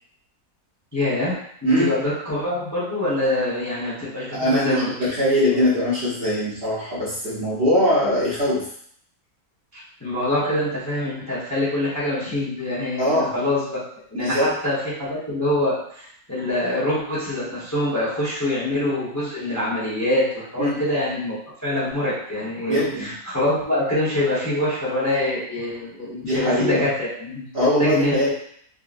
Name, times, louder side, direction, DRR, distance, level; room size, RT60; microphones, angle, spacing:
voice 1, 0.9-4.9 9.7-13.8 14.1-21.4 21.6-27.4 27.8-28.3, left 1 dB, 15° left, -9 dB, 0.7 m, -25 dB
voice 2, 4.3-8.7 13.0-13.3 14.1-14.5 20.6-20.8 22.7-23.1 26.1-26.9 27.5-28.3, equal, 50° right, -10 dB, 0.8 m, -21 dB
3.7 x 2.1 x 2.5 m, 0.65 s
omnidirectional pair, 1.8 m